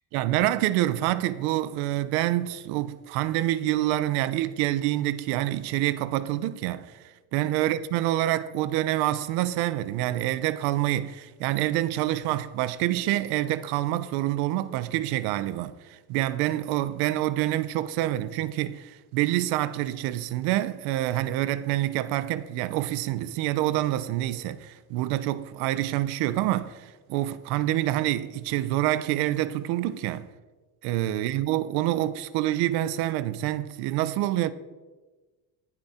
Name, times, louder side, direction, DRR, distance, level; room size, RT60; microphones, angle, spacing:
voice 1, 0.1-30.3 30.8-34.5, right 14 dB, 70° right, 0.8 m, -27 dB
19.0 x 11.5 x 4.3 m
cardioid pair, 170°, 39 cm